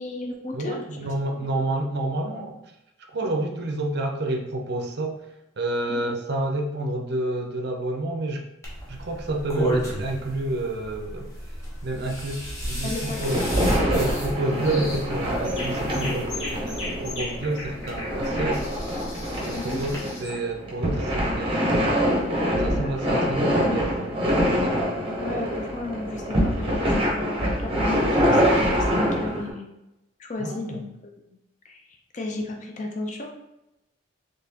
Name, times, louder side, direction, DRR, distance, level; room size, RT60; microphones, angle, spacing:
voice 1, 0.0-0.8 1.4-1.5 5.9-6.0 12.8-13.7 19.5-19.8 22.8-23.2 25.2-29.7 30.2-31.4 31.6-31.8 32.1-33.3, left 2 dB, 35° left, 2 dB, 0.5 m, -34 dB
voice 2, 0.5-2.6 3.1-5.3 5.6-8.5 8.9-11.3 11.8-13.4 13.8-18.7 19.4-21.7 22.6-24.8 30.4-30.8, right 2 dB, 50° right, 3 dB, 0.5 m, -29 dB
sound 1, 8.6-20.0, right 1 dB, 15° left, 0.9 m, -34 dB
sound 2, 13.1-29.5, equal, 25° right, 0.8 m, -25 dB
sound 3, 13.9-14.3 14.6-15.0 15.4-20.4, left 2 dB, 70° left, 1.4 m, -38 dB
4.0 x 3.2 x 2.8 m, 0.90 s
head